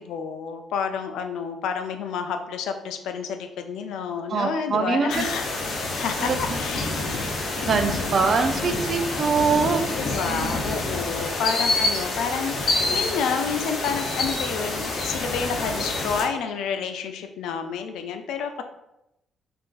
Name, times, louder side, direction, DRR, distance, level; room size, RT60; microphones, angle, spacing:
voice 1, 0.0-5.5 6.0-7.0 10.0-18.6, left 6 dB, 85° left, 7 dB, 0.3 m, -29 dB
voice 2, 4.3-5.2 6.2-6.4 7.7-9.8 10.3-10.6, right 5 dB, 50° right, 6 dB, 0.4 m, -23 dB
sound 1, 5.1-16.2, left 2 dB, 65° left, 0.7 m, -27 dB
2.5 x 2.4 x 3.7 m, 0.88 s
cardioid pair, 90°, 0 cm